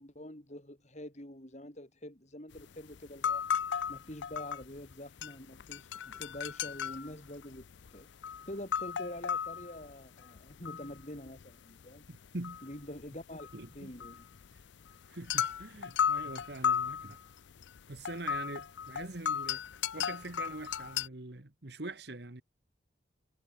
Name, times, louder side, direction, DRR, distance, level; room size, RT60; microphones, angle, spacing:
voice 1, 0.0-3.4 3.9-8.1 8.5-12.0 12.6-13.5 13.7-14.2, left 1 dB, 35° left, 3.3 m, -46 dB
sound 1, 2.5-2.6 2.9-4.9 5.2-11.5 11.8-21.1, left 8 dB, 70° left, 0.5 m, -35 dB
voice 2, 12.1-12.6 13.5-13.9 15.1-17.2 17.9-19.6 19.9-22.4, right 2 dB, 60° right, 1.5 m, -43 dB
head